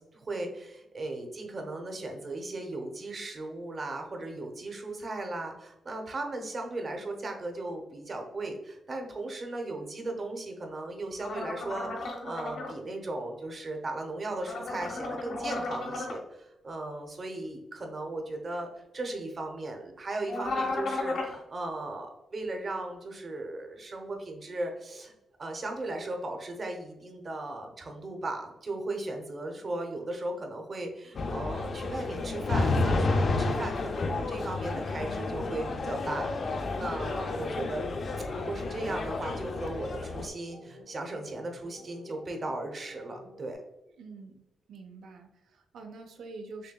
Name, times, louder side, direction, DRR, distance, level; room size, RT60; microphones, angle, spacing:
voice 1, 0.0-18.7 18.9-25.1 25.4-37.9 38.3-43.6, right 2 dB, 40° right, 3 dB, 0.8 m, -37 dB
sound 1, 11.2-12.7 14.4-16.2 20.3-21.3, left 2 dB, 75° left, 1.0 m, -34 dB
sound 2, 31.1-40.3, left 3 dB, 50° left, 0.4 m, -31 dB
sound 3, 33.5-43.5, left 1 dB, 60° right, 1.2 m, -52 dB
voice 2, 44.0-44.4 44.7-46.7, right 3 dB, 85° right, 5 dB, 0.6 m, -46 dB
6.5 x 2.2 x 2.3 m, 0.94 s
cardioid pair, 115°, 0 cm